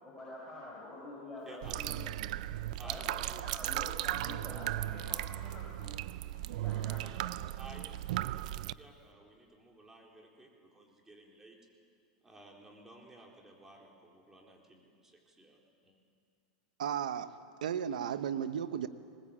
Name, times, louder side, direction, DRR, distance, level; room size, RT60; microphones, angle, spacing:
voice 1, 0.0-2.1 2.8-6.0 6.5-7.4, left 2 dB, 5° left, -6 dB, 7.1 m, -47 dB
voice 2, 1.5-1.8 2.8-3.4 7.6-11.6 12.2-16.0, right 2 dB, 10° right, 0 dB, 4.0 m, -55 dB
sound 1, 1.6-8.7, right 15 dB, 70° right, 0.5 m, -36 dB
voice 3, 16.8-17.3 17.6-18.9, right 8 dB, 90° right, 12 dB, 1.1 m, -34 dB
20.5 x 20.5 x 8.7 m, 2.3 s
supercardioid pair, 130°, 4 cm